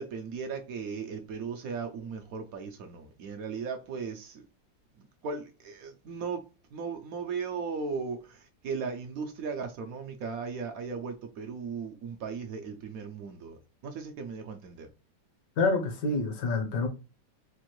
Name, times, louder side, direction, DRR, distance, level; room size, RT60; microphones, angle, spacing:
voice 1, 0.0-4.4 5.0-6.5 6.7-14.9, right 5 dB, 70° right, 0.9 m, -37 dB
voice 2, 15.6-16.9, left 3 dB, 70° left, 1.5 m, -27 dB
4.5 x 2.5 x 3.0 m
omnidirectional pair, 2.0 m